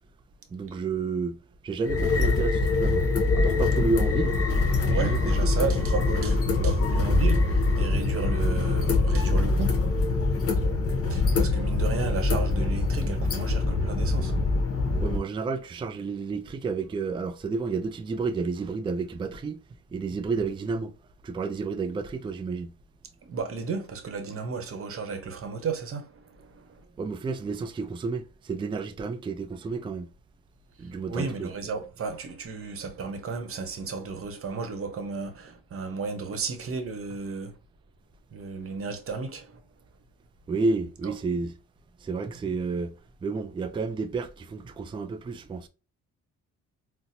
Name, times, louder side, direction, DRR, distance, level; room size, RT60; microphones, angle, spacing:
voice 1, 0.5-1.4 1.6-3.1 3.3-4.4 4.9-5.3 15.0-19.6 19.9-20.9 21.2-22.7 27.0-30.1 30.8-31.5 40.5-41.5 42.0-42.9 43.2-45.7, right 4 dB, 15° right, 0.3 m, -31 dB
sound 1, 1.8-15.2, left 3 dB, 50° left, 0.8 m, -24 dB
voice 2, 4.9-9.8 11.1-14.4 23.2-26.8 31.1-37.6 38.3-39.6 41.0-41.1, right 5 dB, 45° right, 0.8 m, -33 dB
4.1 x 2.0 x 2.6 m
cardioid pair, 90°, 30 cm